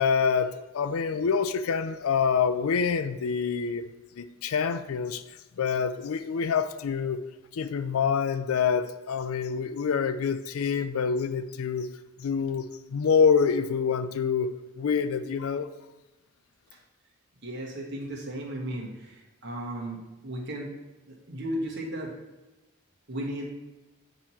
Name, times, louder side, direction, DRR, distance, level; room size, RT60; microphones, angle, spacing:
voice 1, 0.0-3.9 4.2-5.2 5.6-7.2 7.5-11.9 12.2-15.7, left 6 dB, 80° left, 12 dB, 0.4 m, -26 dB
voice 2, 17.4-20.0 20.2-20.7 21.1-22.2 23.1-23.5, right 1 dB, 50° right, -2 dB, 1.3 m, -35 dB
8.9 x 3.0 x 4.2 m, 1.1 s
head